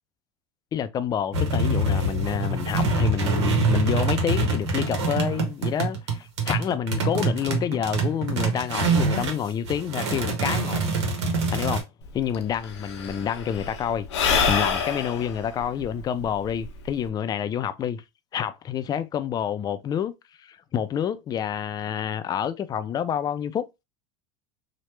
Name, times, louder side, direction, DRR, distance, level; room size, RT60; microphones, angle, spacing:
voice 1, 0.7-10.8 11.5-11.9 12.1-14.1 14.5-18.0 18.3-20.1 20.4-23.7, left 8 dB, 30° left, 0.4 m, -28 dB
sound 1, 1.3-9.4 9.6-11.8, right 3 dB, 85° right, 0.9 m, -25 dB
Sigh / Breathing, 12.1-12.2 12.3-17.1, left 6 dB, 90° left, 0.6 m, -27 dB
3.0 x 2.1 x 3.1 m
supercardioid pair, 105°, 14 cm